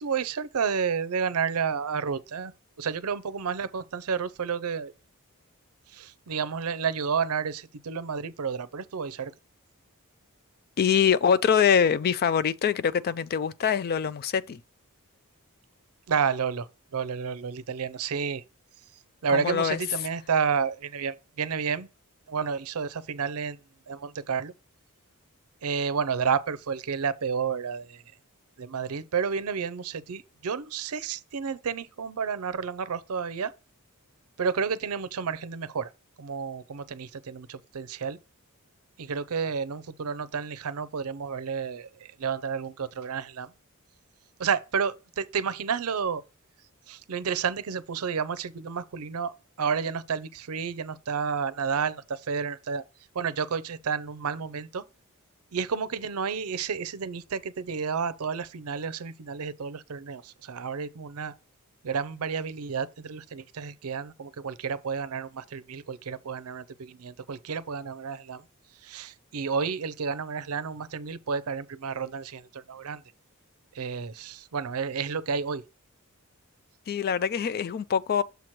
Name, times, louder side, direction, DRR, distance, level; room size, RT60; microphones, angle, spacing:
voice 1, 0.0-2.5 2.8-4.9 5.9-9.3 16.1-16.7 16.9-18.4 19.2-21.9 22.3-23.6 23.9-24.5 25.6-28.0 28.6-33.5 34.4-35.9 36.2-38.2 39.0-43.5 44.4-46.2 46.9-52.8 53.1-54.8 55.5-61.3 61.8-68.4 68.8-73.0 73.7-75.6, right 6 dB, 70° right, 0.5 m, -31 dB
voice 2, 10.8-14.6 19.3-19.8 76.9-78.2, left 7 dB, 45° left, 0.3 m, -24 dB
6.9 x 3.1 x 5.9 m
head